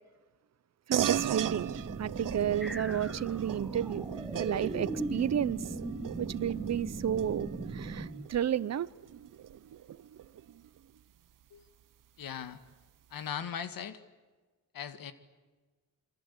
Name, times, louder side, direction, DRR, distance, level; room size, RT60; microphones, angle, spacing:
voice 1, 0.9-1.7 2.0-4.1 4.4-5.7 6.2-8.9, right 10 dB, 50° right, 0.8 m, -32 dB
sound 1, 0.9-10.8, right 10 dB, 70° right, 1.0 m, -38 dB
sound 2, 1.1-8.1, right 4 dB, 30° right, 2.6 m, -41 dB
sound 3, 2.6-8.3, right 1 dB, ahead, 1.7 m, -41 dB
voice 2, 12.2-12.6 13.1-14.0 14.7-15.1, left 8 dB, 85° left, 1.9 m, -39 dB
28.0 x 25.0 x 8.4 m
wide cardioid pair, 140°, 33 cm